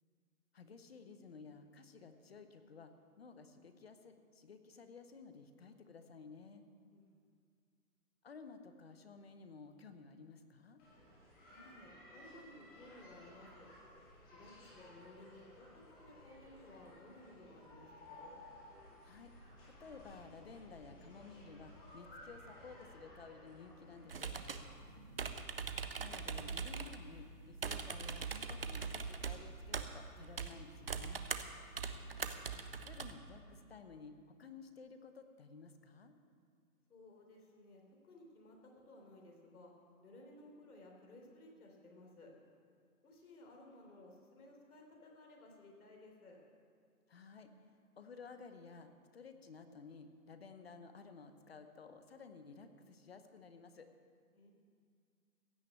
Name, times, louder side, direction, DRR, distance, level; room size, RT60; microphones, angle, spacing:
voice 1, 0.5-6.6 8.2-10.8 19.0-19.3 19.6-24.3 26.0-31.3 32.8-36.1 47.1-53.9, left 4 dB, 40° left, 8 dB, 0.8 m, -55 dB
sound 1, 10.8-24.8, left 1 dB, 15° left, 2.0 m, -57 dB
voice 2, 11.4-13.7 14.3-18.4 24.7-25.4 31.6-32.0 36.9-39.7 40.0-42.3 43.0-46.4 54.3-54.5, left 1 dB, 70° left, 0 dB, 3.6 m, -58 dB
sound 2, 24.1-33.1, right 5 dB, 40° right, 0.5 m, -42 dB
16.0 x 6.3 x 8.3 m, 2.2 s
hypercardioid pair, 175°, 46 cm